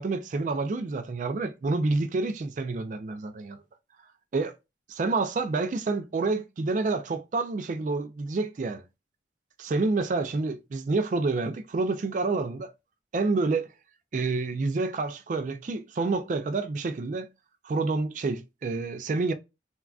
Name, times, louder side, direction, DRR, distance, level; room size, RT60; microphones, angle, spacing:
voice 1, 0.0-3.6 4.3-4.5 4.9-8.8 9.6-12.7 13.1-13.7 14.1-17.3 17.6-19.3, right 3 dB, 45° right, 0.3 m, -28 dB
3.5 x 2.3 x 2.3 m
head